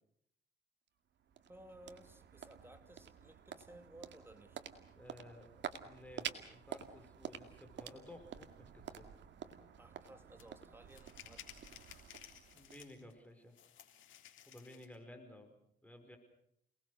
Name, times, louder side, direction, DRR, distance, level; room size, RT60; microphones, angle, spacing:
sound 1, 0.9-13.3, right 8 dB, 65° right, 2.2 m, -50 dB
voice 1, 1.5-4.6 9.8-11.7, right 1 dB, 10° right, 8 dB, 2.7 m, -58 dB
voice 2, 4.9-5.5 5.8-9.1 12.5-13.5 14.5-15.5 15.8-16.2, left 1 dB, 5° left, 5 dB, 5.2 m, -55 dB
sound 2, 10.4-10.5 10.9-13.1 13.5-15.0, left 10 dB, 75° left, 3.4 m, -56 dB
28.5 x 20.0 x 6.6 m, 0.72 s
cardioid pair, 90°, 20 cm